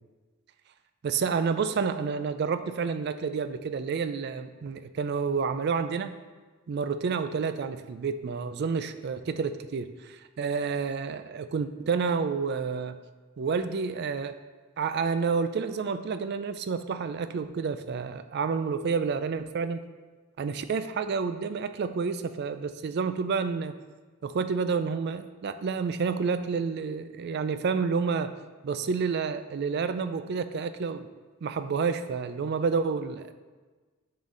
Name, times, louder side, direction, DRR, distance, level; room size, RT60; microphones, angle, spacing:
voice 1, 1.0-6.1 6.7-13.0 13.4-14.3 14.8-19.8 20.4-23.7 24.2-28.3 28.6-31.1 31.4-33.3, right 5 dB, 50° right, 10 dB, 0.3 m, -29 dB
7.1 x 3.9 x 3.8 m, 1.3 s
head